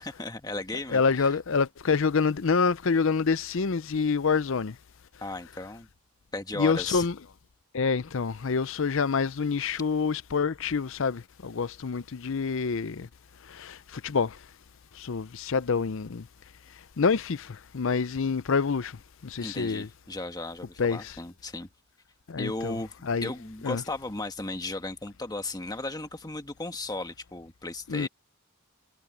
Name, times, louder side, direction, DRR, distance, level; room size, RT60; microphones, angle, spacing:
voice 1, 0.0-1.4 5.2-5.9 6.3-7.1 19.4-21.7 22.4-28.1, left 2 dB, 20° left, 1.4 m, -35 dB
voice 2, 0.9-4.7 6.6-7.1 7.7-13.1 13.6-13.8 14.0-14.3 15.0-16.2 17.0-17.5 17.7-18.9 19.2-19.9 20.8-21.1 22.3-22.8 23.0-23.3 23.6-23.8 27.9-28.1, left 5 dB, 65° left, 0.6 m, -27 dB
head